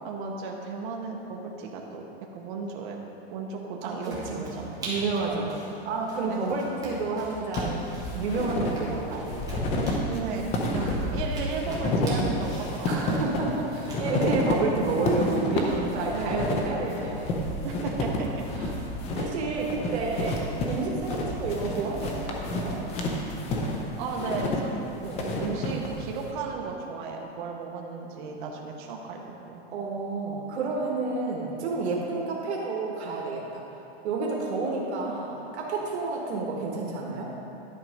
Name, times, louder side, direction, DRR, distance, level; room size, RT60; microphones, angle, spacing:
voice 1, 0.0-2.1 2.3-3.0 3.3-4.9 5.3-5.5 6.3-6.6 10.1-13.0 16.1-16.4 17.6-18.3 19.2-19.3 24.0-24.9 25.2-29.6 34.6-35.1, right 4 dB, 50° right, 0 dB, 0.9 m, -35 dB
sound 1, 4.0-16.0, right 1 dB, 10° right, 1.4 m, -43 dB
voice 2, 4.8-5.6 5.8-9.6 10.8-11.2 12.9-17.3 18.6-18.7 19.2-20.4 20.6-22.8 25.0-25.2 29.7-33.6 34.0-37.2, right 3 dB, 85° right, -2 dB, 1.4 m, -30 dB
sound 2, 7.6-26.3, left 1 dB, 20° left, 0.6 m, -30 dB
11.0 x 4.5 x 5.2 m, 3.0 s
supercardioid pair, 165°, 32 cm